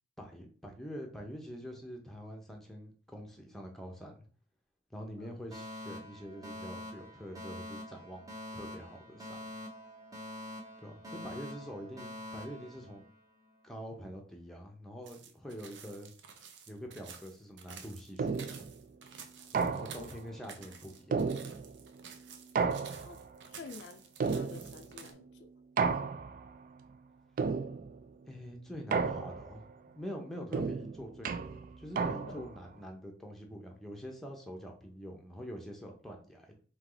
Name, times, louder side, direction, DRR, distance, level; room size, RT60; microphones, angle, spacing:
voice 1, 0.2-4.2 4.9-9.5 10.8-13.0 13.6-16.1 16.7-18.5 19.5-21.2 28.3-29.7 29.9-36.5, equal, ahead, 0.8 m, -45 dB
Alarm, 5.5-13.5, left 1 dB, 20° right, 1.0 m, -45 dB
sound 1, 15.1-25.1, right 7 dB, 85° right, 0.7 m, -51 dB
sound 2, 18.2-18.7 19.5-20.2 21.1-21.9 22.5-23.3 24.2-24.9 25.8-26.5 27.4-28.0 28.9-29.6 30.5-32.6, right 5 dB, 50° right, 0.3 m, -33 dB
voice 2, 23.5-25.5 32.2-32.5, left 4 dB, 75° left, 0.4 m, -50 dB
4.3 x 2.9 x 3.9 m
head